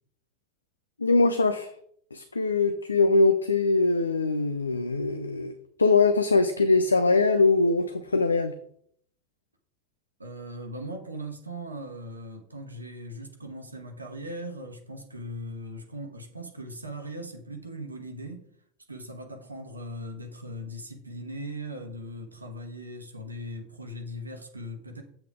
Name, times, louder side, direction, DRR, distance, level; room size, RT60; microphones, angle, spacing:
voice 1, 1.0-1.7 2.1-8.5, left 3 dB, 80° left, 9 dB, 0.5 m, -22 dB
voice 2, 10.2-18.5 18.9-25.0, equal, 85° right, 4 dB, 1.0 m, -39 dB
7.9 x 7.4 x 3.5 m, 0.63 s
figure-of-eight pair, 80°, 0 cm